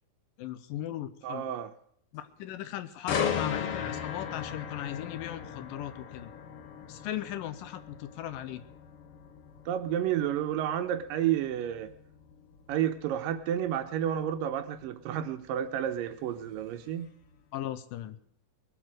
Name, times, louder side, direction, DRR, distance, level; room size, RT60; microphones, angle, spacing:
voice 1, 0.4-1.5 2.1-6.3 6.9-8.6 17.5-18.2, left 12 dB, 75° left, 12 dB, 2.3 m, -38 dB
voice 2, 1.2-1.7 9.7-11.9 12.7-17.1, right 10 dB, 75° right, 9 dB, 2.4 m, -31 dB
sound 1, 3.1-16.9 17.3-17.6, left 7 dB, 60° left, 1.5 m, -38 dB
21.0 x 7.9 x 6.3 m, 0.65 s
omnidirectional pair, 4.2 m